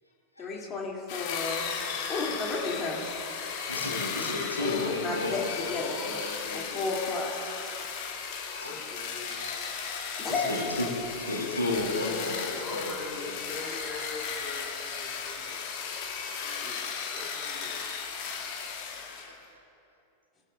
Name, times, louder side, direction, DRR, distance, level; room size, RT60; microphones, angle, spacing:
voice 1, 0.4-3.1 4.6-6.0 6.5-7.3 9.6-9.7 10.2-10.5 16.4-16.7, left 3 dB, 25° left, -2 dB, 2.6 m, -33 dB
sound 1, 1.1-19.3, left 6 dB, 45° left, 2.1 m, -36 dB
voice 2, 3.7-6.7 7.9-8.8 9.4-10.9 11.2-13.4, left 2 dB, 85° left, -3 dB, 2.4 m, -34 dB
voice 3, 5.6-6.7 8.6-9.5 12.4-15.6 16.6-17.9, left 3 dB, 10° left, -7 dB, 3.0 m, -43 dB
23.0 x 13.5 x 2.5 m, 2.7 s
figure-of-eight pair, 90°, 0 cm